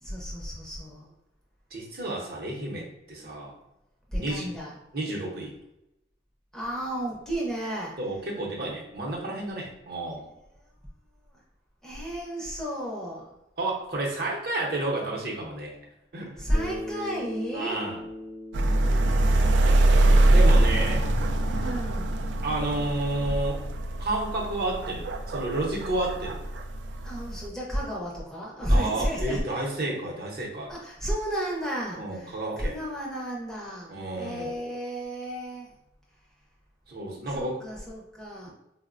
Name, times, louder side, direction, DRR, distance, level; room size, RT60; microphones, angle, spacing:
voice 1, 0.0-1.1 3.2-3.4 4.1-4.8 6.5-8.0 10.1-10.3 11.3-11.4 11.8-13.4 16.4-17.8 21.5-22.2 26.9-29.6 30.7-35.7 37.3-38.5, equal, 5° left, -4 dB, 0.5 m, -32 dB
voice 2, 1.7-3.5 4.1-4.5 4.9-5.5 8.0-10.3 13.6-15.7 16.1-16.4 17.5-18.0 20.3-21.1 22.4-23.7 24.0-26.4 28.7-30.7 31.9-32.8 33.9-34.5 36.9-37.6, right 2 dB, 55° right, -2 dB, 0.7 m, -31 dB
Bass guitar, 16.5-20.9, left 2 dB, 60° left, 0.7 m, -40 dB
sound 1, 18.5-27.5, right 1 dB, 85° right, 0.3 m, -23 dB
3.9 x 2.0 x 2.4 m, 0.89 s
head